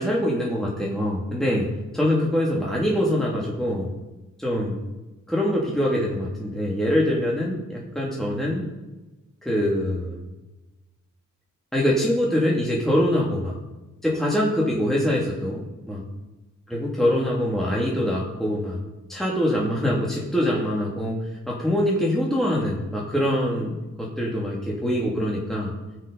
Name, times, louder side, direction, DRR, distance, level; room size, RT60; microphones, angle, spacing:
voice 1, 0.0-1.7 1.9-3.9 4.4-4.8 5.3-8.7 9.4-10.2 11.7-13.6 14.0-15.6 15.9-16.0 16.7-18.8 19.1-21.2 21.5-25.7, equal, ahead, -4 dB, 2.7 m, -24 dB
19.5 x 6.6 x 5.3 m, 1.1 s
cardioid pair, 85°, 31 cm